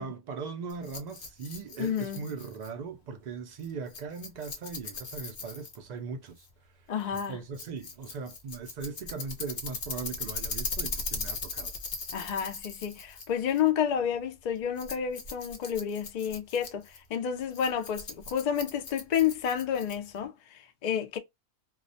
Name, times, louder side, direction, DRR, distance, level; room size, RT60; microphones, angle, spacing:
voice 1, 0.0-6.5 6.8-11.7, right 5 dB, 75° right, 0.4 m, -39 dB
Rattle, 0.7-20.3, left 4 dB, 55° left, 0.7 m, -40 dB
voice 2, 1.8-2.2 6.9-7.4 12.1-21.2, left 8 dB, 80° left, 0.3 m, -30 dB
2.3 x 2.0 x 2.6 m
omnidirectional pair, 1.3 m